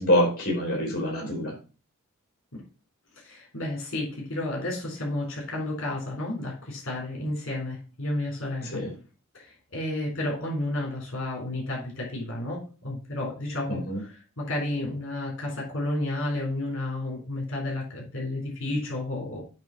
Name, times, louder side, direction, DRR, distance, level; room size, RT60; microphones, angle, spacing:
voice 1, 0.0-1.5 8.7-8.9 13.7-14.0, equal, 45° left, -3 dB, 3.5 m, -25 dB
voice 2, 3.2-8.8 9.3-19.4, left 1 dB, 65° left, -2 dB, 3.8 m, -31 dB
8.9 x 3.5 x 5.9 m, 0.35 s
head